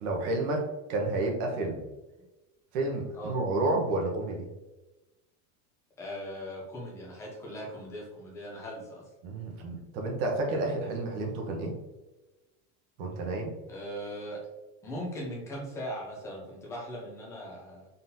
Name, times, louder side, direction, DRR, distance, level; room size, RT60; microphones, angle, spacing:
voice 1, 0.0-1.8 2.7-4.4 9.2-11.7 13.0-13.5, right 2 dB, 55° right, 1 dB, 1.1 m, -30 dB
voice 2, 6.0-9.0 13.7-14.4 14.8-17.9, equal, 5° left, -3 dB, 0.4 m, -39 dB
4.1 x 3.7 x 2.6 m, 1.1 s
supercardioid pair, 175°, 43 cm